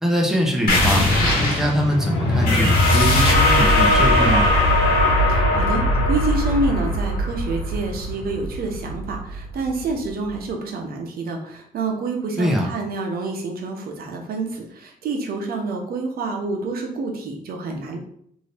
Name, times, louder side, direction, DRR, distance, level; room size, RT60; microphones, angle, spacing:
voice 1, 0.0-4.5 12.4-12.7, equal, 5° right, 0 dB, 0.6 m, -23 dB
sound 1, 0.7-9.9, left 1 dB, 85° left, 1.3 m, -19 dB
voice 2, 5.3-18.0, right 3 dB, 75° right, 2 dB, 0.7 m, -28 dB
2.7 x 2.7 x 3.3 m, 0.67 s
cardioid pair, 125°, 16 cm